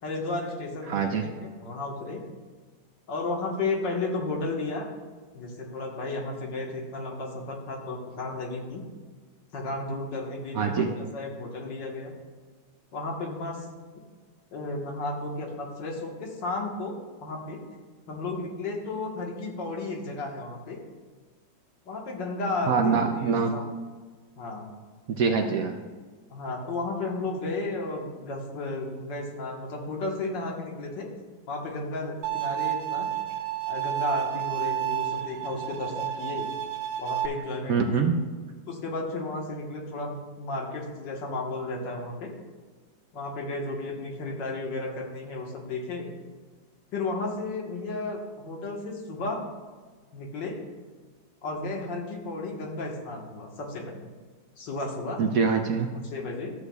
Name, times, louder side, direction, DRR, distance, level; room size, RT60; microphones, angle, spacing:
voice 1, 0.0-2.2 3.1-4.9 5.3-8.8 9.5-12.1 12.9-13.7 14.5-16.9 17.2-17.6 18.1-20.8 21.9-23.0 23.5-23.7 24.4-24.7 26.3-31.1 31.5-33.1 33.7-36.5 37.0-38.0 38.7-42.3 43.1-46.1 46.9-49.4 50.1-50.6 51.4-54.1 54.6-55.2 56.0-56.5, left 2 dB, 80° left, 0 dB, 2.1 m, -33 dB
voice 2, 0.9-1.3 10.5-10.9 22.7-23.5 25.1-25.7 37.7-38.1 55.2-55.9, right 5 dB, 65° right, 4 dB, 0.9 m, -24 dB
Bowed string instrument, 32.2-37.3, right 12 dB, 80° right, 1.4 m, -30 dB
13.0 x 8.1 x 2.3 m, 1.5 s
omnidirectional pair, 1.9 m